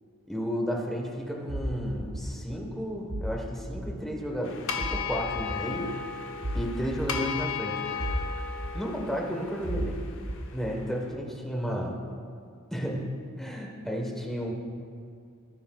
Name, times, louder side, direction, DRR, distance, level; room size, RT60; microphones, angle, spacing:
voice 1, 0.3-5.9 6.5-8.2 8.7-10.0 10.5-12.0 12.7-13.1 13.4-14.5, equal, ahead, -1 dB, 1.1 m, -32 dB
sound 1, 1.5-1.7 2.1-2.3 3.1-3.3 3.8-3.9 4.8-5.0 5.4-5.5 6.4-6.6 7.0-7.1 8.0-8.3 8.6-8.7 9.6-9.9 10.3-10.4, equal, 70° right, 1.2 m, -32 dB
sound 2, 4.4-10.8, left 6 dB, 60° left, 0.7 m, -36 dB
16.5 x 9.9 x 2.3 m, 2.2 s
head